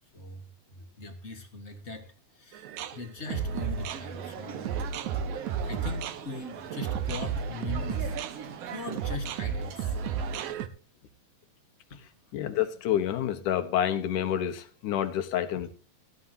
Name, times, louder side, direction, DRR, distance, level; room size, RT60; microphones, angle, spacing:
voice 1, 0.1-4.8 5.6-8.2 8.7-10.0 11.9-12.0, left 3 dB, 35° left, 6 dB, 1.1 m, -41 dB
sound 1, 2.5-10.7, right 6 dB, 75° right, 2.2 m, -33 dB
sound 2, 3.2-10.5, right 8 dB, 60° right, 2.1 m, -41 dB
voice 2, 12.3-15.7, left 10 dB, 85° left, 8 dB, 2.7 m, -28 dB
15.5 x 13.5 x 2.8 m, 0.38 s
omnidirectional pair, 3.5 m